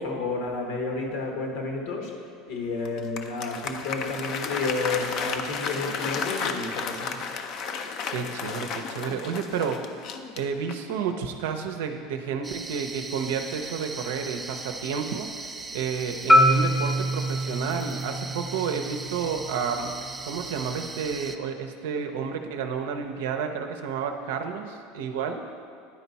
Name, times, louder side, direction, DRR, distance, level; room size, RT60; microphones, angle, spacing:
voice 1, 0.0-2.1 2.4-7.2, left 3 dB, 70° left, 1 dB, 1.3 m, -31 dB
Applause, 2.8-11.0, left 5 dB, 55° left, 0.5 m, -33 dB
voice 2, 8.1-9.8 10.4-15.3 15.7-19.9 20.2-25.5, right 6 dB, 80° right, 5 dB, 0.6 m, -31 dB
sound 1, 12.4-21.4, right 3 dB, 15° right, 0.4 m, -39 dB
Marimba xylophone, 16.3-20.5, equal, 20° left, 0.8 m, -25 dB
10.0 x 4.5 x 4.1 m, 2.2 s
supercardioid pair, 100°, 0 cm